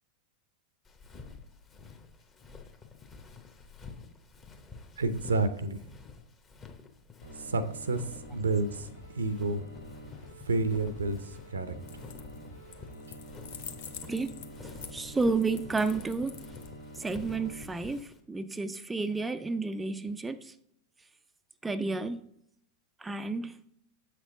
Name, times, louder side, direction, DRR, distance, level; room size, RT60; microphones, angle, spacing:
Walk footsteps, 0.9-18.2, left 4 dB, 20° left, 0.9 m, -49 dB
voice 1, 5.0-5.8 7.5-8.0 8.3-8.9 9.2-9.6 10.5-11.7, right 3 dB, 70° right, 13 dB, 0.6 m, -29 dB
sound 1, 7.2-17.6, right 1 dB, 85° left, 2.0 m, -48 dB
sound 2, 11.8-12.4 12.7-17.0, left 8 dB, 55° left, 0.6 m, -46 dB
voice 2, 14.9-16.4 17.0-20.5 21.6-22.3 23.0-23.6, right 3 dB, 10° right, 9 dB, 0.3 m, -31 dB
7.8 x 6.0 x 3.8 m, 0.73 s
figure-of-eight pair, 90°, 0 cm